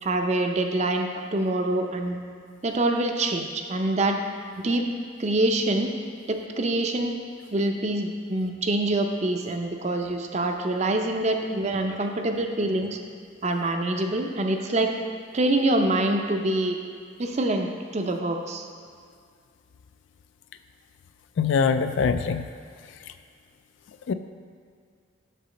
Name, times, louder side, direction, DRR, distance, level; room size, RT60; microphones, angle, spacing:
voice 1, 0.0-2.2 2.6-4.2 4.6-4.9 5.2-5.9 6.3-7.2 7.5-13.0 13.4-14.9 15.3-16.8 17.2-18.7, right 2 dB, 35° right, 4 dB, 0.5 m, -25 dB
voice 2, 21.4-22.4 24.1-24.2, left 5 dB, 70° left, 10 dB, 0.3 m, -23 dB
6.7 x 4.0 x 6.3 m, 2.2 s
head